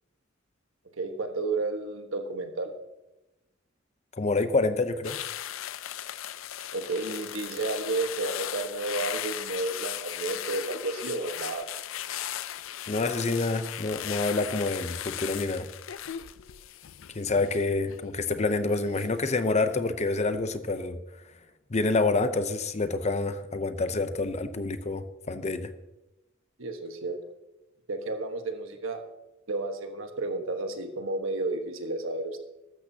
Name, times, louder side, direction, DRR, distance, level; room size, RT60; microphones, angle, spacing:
voice 1, 1.0-2.7 6.7-11.7 26.6-27.2 27.9-29.0 29.5-32.4, right 2 dB, 85° right, 5 dB, 1.4 m, -32 dB
voice 2, 4.1-5.2 12.9-15.7 17.1-21.0 21.7-25.7, left 3 dB, 35° left, 11 dB, 0.7 m, -27 dB
sound 1, 5.0-18.4 18.7-19.1, left 11 dB, 80° left, 0.5 m, -37 dB
14.5 x 12.5 x 2.8 m, 1.0 s
head